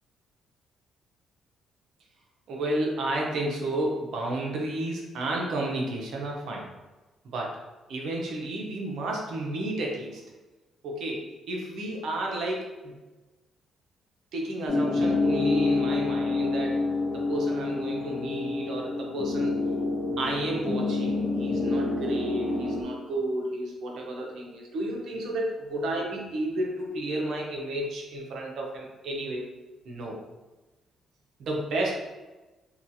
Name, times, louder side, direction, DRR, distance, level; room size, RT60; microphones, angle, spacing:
voice 1, 2.5-6.7 7.2-7.6 7.9-10.2 10.8-12.9 14.3-16.8 17.1-19.5 20.2-29.5 29.8-30.2 31.4-31.9, right 1 dB, 70° right, -1 dB, 0.6 m, -32 dB
sound 1, 14.7-22.8, left 3 dB, 45° left, 0.7 m, -27 dB
2.8 x 2.3 x 2.7 m, 1.1 s
cardioid pair, 90°, 0 cm